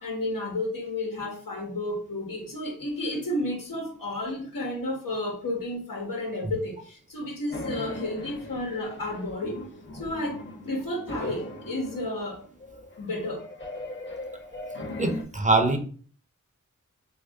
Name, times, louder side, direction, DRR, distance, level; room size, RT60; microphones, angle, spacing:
voice 1, 0.0-9.6 9.9-12.4 13.0-13.5, left 1 dB, 90° left, 1.2 m, -32 dB
sound 1, 7.5-15.2, left 1 dB, 35° left, 0.9 m, -39 dB
voice 2, 15.0-15.8, right 2 dB, 25° right, 0.6 m, -22 dB
2.9 x 2.6 x 3.5 m
cardioid pair, 45°, 33 cm